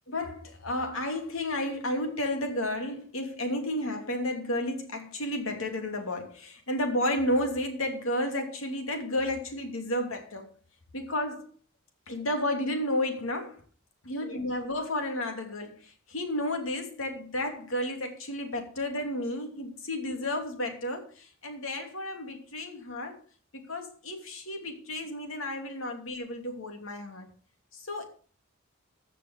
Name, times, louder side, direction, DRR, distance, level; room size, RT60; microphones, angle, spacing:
voice 1, 0.1-10.5 10.9-11.5 12.1-13.6 14.1-23.2 23.5-27.3 27.7-28.0, left 1 dB, 80° left, 2.9 m, -32 dB
15.0 x 6.0 x 6.4 m
head